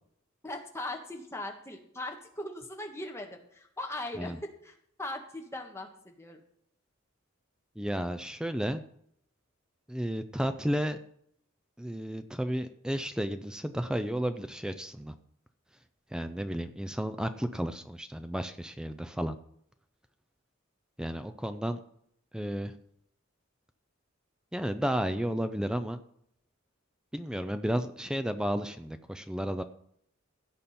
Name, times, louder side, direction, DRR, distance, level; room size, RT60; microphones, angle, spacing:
voice 1, 0.4-4.3 4.6-6.4, left 1 dB, 15° left, 2 dB, 1.5 m, -39 dB
voice 2, 7.8-8.8 9.9-11.0 11.8-15.1 16.1-19.4 21.0-21.8 22.3-22.8 24.5-26.0 27.1-29.6, equal, 5° right, 9 dB, 0.5 m, -32 dB
16.0 x 7.2 x 4.3 m, 0.69 s
head